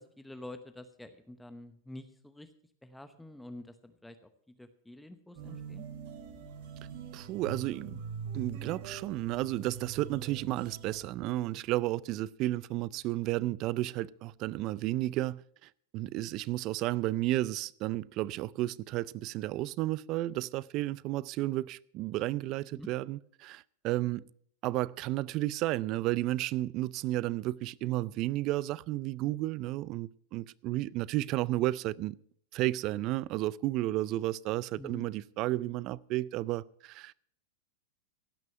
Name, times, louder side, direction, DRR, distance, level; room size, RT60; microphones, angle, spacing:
voice 1, 0.0-2.5 2.8-5.8 22.7-22.9 34.8-35.1, left 1 dB, 5° left, 0.9 m, -48 dB
sound 1, 5.3-11.1, right 6 dB, 65° right, 2.9 m, -43 dB
voice 2, 7.1-8.0 8.3-15.4 15.9-24.2 24.6-32.2 32.5-37.1, right 16 dB, 45° right, 0.4 m, -32 dB
16.5 x 6.2 x 7.8 m
hypercardioid pair, 115°, 0 cm